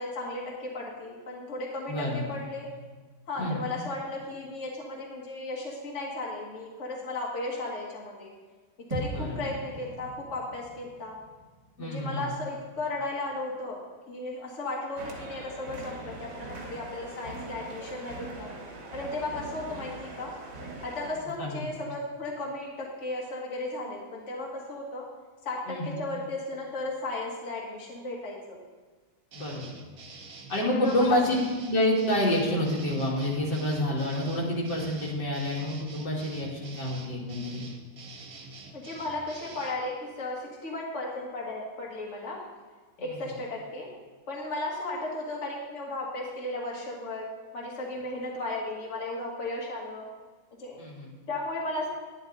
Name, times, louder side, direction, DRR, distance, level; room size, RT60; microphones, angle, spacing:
voice 1, 0.0-2.7 3.3-8.3 8.9-11.2 11.8-13.8 14.1-18.5 18.9-20.3 20.8-25.0 25.4-28.6 30.7-31.2 38.7-42.4 43.0-43.9 44.3-50.0 50.6-50.8 51.3-51.9, left 2 dB, 40° left, -3 dB, 2.0 m, -35 dB
voice 2, 1.9-2.2 3.4-3.6 9.1-9.4 11.8-12.3 21.4-21.7 25.7-26.0 29.3-29.7 30.5-31.4 31.6-37.6 43.0-43.3 50.8-51.1, left 1 dB, 75° left, -4 dB, 2.7 m, -28 dB
sound 1, 8.9-13.3, right 1 dB, 20° right, 1.2 m, -41 dB
sound 2, 15.0-21.1, right 2 dB, 90° right, 2.3 m, -41 dB
sound 3, 29.3-39.8, right 3 dB, 55° right, 1.5 m, -47 dB
10.5 x 10.5 x 4.0 m, 1.4 s
omnidirectional pair, 1.9 m